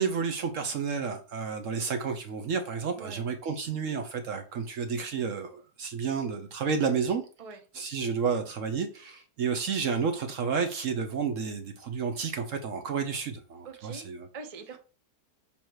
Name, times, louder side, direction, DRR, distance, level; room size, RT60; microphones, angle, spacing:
voice 1, 0.0-7.2 7.7-14.2, right 6 dB, 60° right, 1.0 m, -31 dB
voice 2, 13.6-14.1 14.3-14.8, right 4 dB, 30° right, 0.6 m, -43 dB
7.1 x 2.9 x 4.6 m
omnidirectional pair, 1.7 m